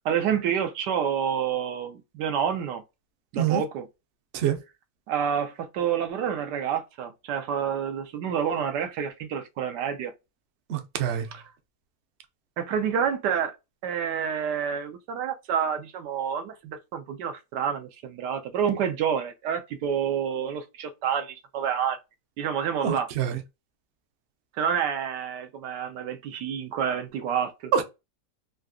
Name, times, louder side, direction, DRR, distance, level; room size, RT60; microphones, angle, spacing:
voice 1, 0.0-2.8 3.3-3.9 5.1-10.1 11.3-11.5 12.6-13.6 13.8-22.0 22.4-23.1 24.6-27.7, right 8 dB, 85° right, 1.3 m, -28 dB
voice 2, 10.7-11.2 22.8-23.3 27.7-27.8, right 8 dB, 60° right, 0.7 m, -25 dB
3.8 x 2.3 x 2.2 m
omnidirectional pair, 1.8 m